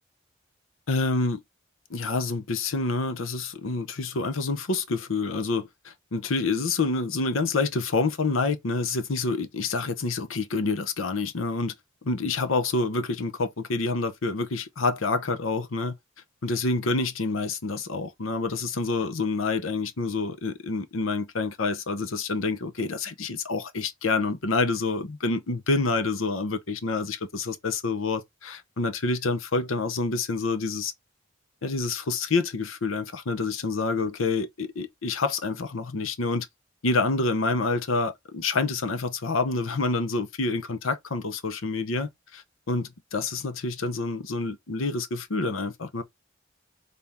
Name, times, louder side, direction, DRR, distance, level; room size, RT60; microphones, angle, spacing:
voice 1, 0.9-1.4 1.9-11.7 12.0-16.0 16.4-30.9 31.6-36.5 36.8-46.0, left 3 dB, 80° left, 0.8 m, -27 dB
4.2 x 3.5 x 3.6 m
head